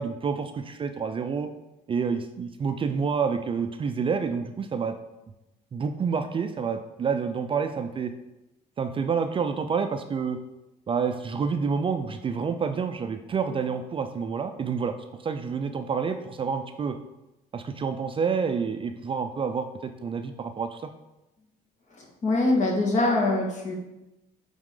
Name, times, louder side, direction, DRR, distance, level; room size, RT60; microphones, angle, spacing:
voice 1, 0.0-1.5 1.9-4.9 5.7-8.1 8.8-10.4 10.9-17.0 17.5-20.9, right 5 dB, 30° right, 7 dB, 0.4 m, -28 dB
voice 2, 22.0-23.7, left 2 dB, 45° left, 0 dB, 1.7 m, -24 dB
8.7 x 3.6 x 3.8 m, 0.96 s
cardioid pair, 110°, 17 cm